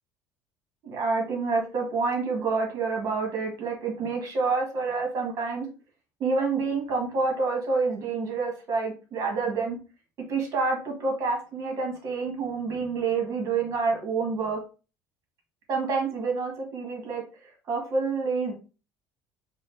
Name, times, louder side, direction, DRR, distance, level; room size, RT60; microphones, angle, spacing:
voice 1, 0.8-5.7 6.2-9.8 10.3-14.6 15.7-17.2 17.7-18.5, right 4 dB, 40° right, 1 dB, 1.8 m, -28 dB
5.0 x 2.4 x 3.9 m, 0.34 s
cardioid pair, 155°, 8 cm